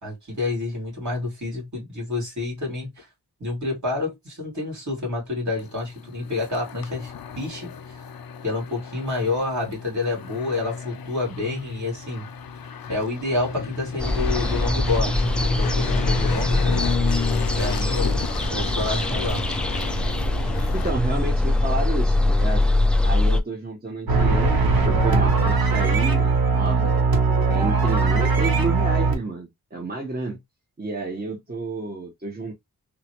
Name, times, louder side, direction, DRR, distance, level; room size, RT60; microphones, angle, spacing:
voice 1, 0.0-3.1 3.4-8.0 8.4-12.3 12.9-15.2 15.6-17.0 17.6-18.2 18.5-19.5, left 2 dB, 55° right, 2.4 m, -28 dB
sound 1, 5.6-20.9, left 6 dB, 75° left, 0.5 m, -32 dB
sound 2, 14.0-23.4, left 2 dB, 5° left, 0.4 m, -22 dB
voice 2, 20.7-22.7 23.0-26.9 27.5-30.4 30.8-32.5, right 3 dB, 25° right, 0.9 m, -30 dB
sound 3, 24.1-29.1, right 3 dB, 75° right, 1.0 m, -20 dB
3.7 x 2.2 x 2.8 m
wide cardioid pair, 75°, 36 cm